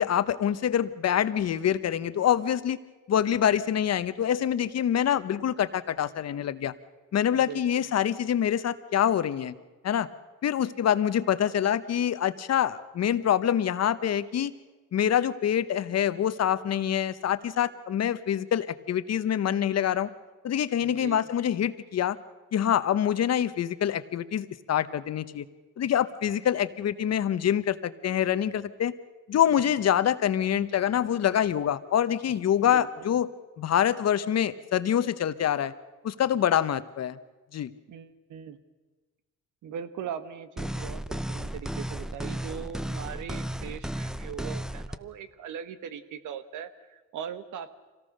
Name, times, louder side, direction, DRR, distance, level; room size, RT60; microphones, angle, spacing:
voice 1, 0.0-2.8 3.1-6.7 7.1-9.5 9.8-10.1 10.4-14.5 14.9-20.1 20.4-22.2 22.5-25.4 25.8-28.9 29.3-33.3 33.6-35.7 36.0-37.2 37.5-37.7, left 9 dB, 55° left, 14 dB, 1.0 m, -25 dB
voice 2, 7.3-7.9 20.8-21.2 32.6-33.1 37.9-38.6 39.6-47.7, right 8 dB, 75° right, 12 dB, 1.4 m, -40 dB
sound 1, 40.6-45.0, equal, ahead, 0.8 m, -34 dB
25.5 x 17.5 x 6.6 m, 1.3 s
cardioid pair, 90°, 30 cm